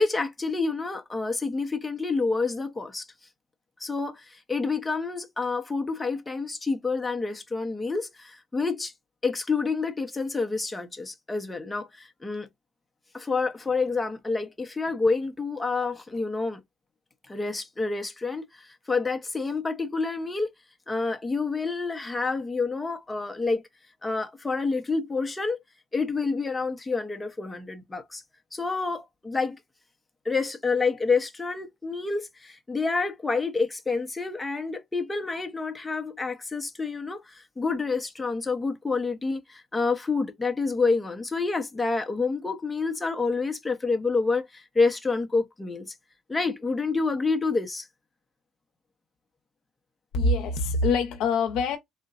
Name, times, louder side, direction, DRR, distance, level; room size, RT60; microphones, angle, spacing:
voice 1, 0.0-3.0 3.8-8.9 9.2-12.5 13.1-16.6 17.3-20.5 20.9-23.6 24.0-25.6 25.9-28.2 28.5-29.6 30.2-45.9 46.3-47.9, left 4 dB, 15° left, 0.7 m, -28 dB
voice 2, 50.1-51.8, left 3 dB, 80° left, 0.6 m, -24 dB
3.8 x 2.2 x 2.3 m
cardioid pair, 120°, 0 cm